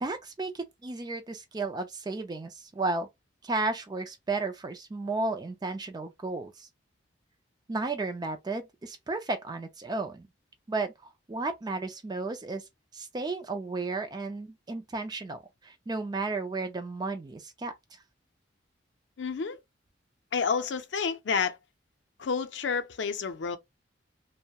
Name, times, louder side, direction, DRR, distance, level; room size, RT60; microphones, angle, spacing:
voice 1, 0.0-3.1 3.4-6.7 7.7-10.3 10.7-12.6 12.9-17.7, right 3 dB, 20° right, 0.3 m, -33 dB
voice 2, 19.2-19.6 20.3-21.6 22.2-23.6, left 5 dB, 70° left, 0.5 m, -29 dB
2.8 x 2.1 x 2.2 m
head